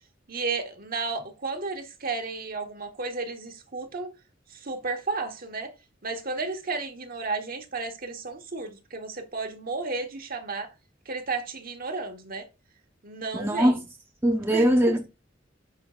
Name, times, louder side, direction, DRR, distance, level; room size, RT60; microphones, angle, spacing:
voice 1, 0.3-4.1 4.5-5.7 6.0-10.7 11.0-12.4 13.0-13.8 14.5-14.7, right 3 dB, 50° right, 1.3 m, -33 dB
voice 2, 13.3-13.8 14.2-15.1, equal, 10° right, 0.7 m, -21 dB
8.3 x 5.6 x 2.4 m
head